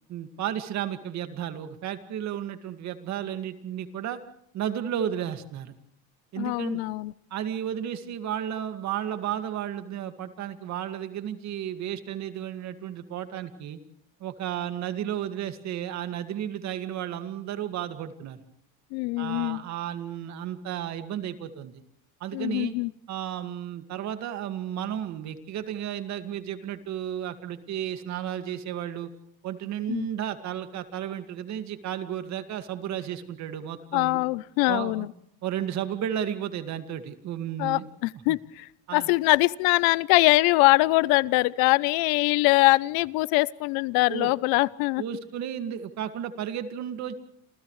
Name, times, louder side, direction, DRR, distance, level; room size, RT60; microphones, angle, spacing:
voice 1, 0.1-4.2 4.5-5.7 6.3-6.8 7.3-13.8 14.2-18.4 19.2-21.8 22.2-22.7 23.1-29.1 29.4-34.2 34.7-35.1 35.4-37.9 38.9-39.1 44.1-44.3 45.0-47.1, right 10 dB, 50° right, 9 dB, 2.1 m, -33 dB
voice 2, 6.4-7.1 18.9-19.6 22.3-22.9 29.9-30.1 33.9-35.1 37.6-45.0, left 22 dB, 80° left, 20 dB, 0.8 m, -23 dB
29.5 x 27.5 x 3.2 m, 0.72 s
cardioid pair, 155°, 36 cm